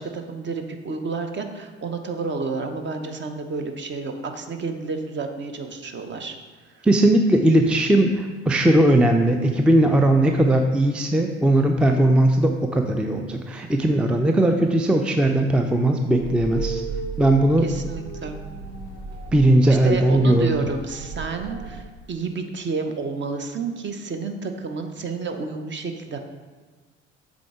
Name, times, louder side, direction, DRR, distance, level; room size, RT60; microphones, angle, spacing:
voice 1, 0.0-6.4 6.6-6.8 17.6-18.4 19.7-26.2, right 4 dB, 35° right, 6 dB, 0.9 m, -30 dB
voice 2, 6.8-16.8 17.2-17.6 19.3-20.5, right 1 dB, 5° right, 4 dB, 0.5 m, -18 dB
sound 1, 16.2-21.8, right 4 dB, 75° right, 1.1 m, -34 dB
7.6 x 3.6 x 4.9 m, 1.4 s
figure-of-eight pair, 55°, 33 cm